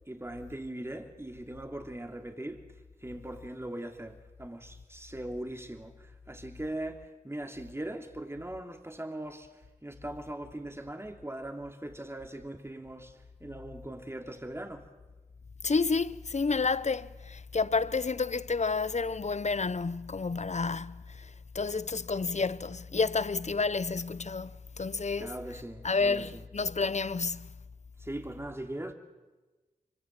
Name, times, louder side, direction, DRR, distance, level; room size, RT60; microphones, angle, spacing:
voice 1, 0.1-2.7 3.0-14.9 25.2-26.4 28.0-28.9, right 1 dB, 15° right, 2.8 m, -40 dB
voice 2, 15.6-24.5 24.8-25.3 25.8-27.5, left 4 dB, 50° left, 0.8 m, -30 dB
25.0 x 24.5 x 7.4 m
cardioid pair, 45°, 15 cm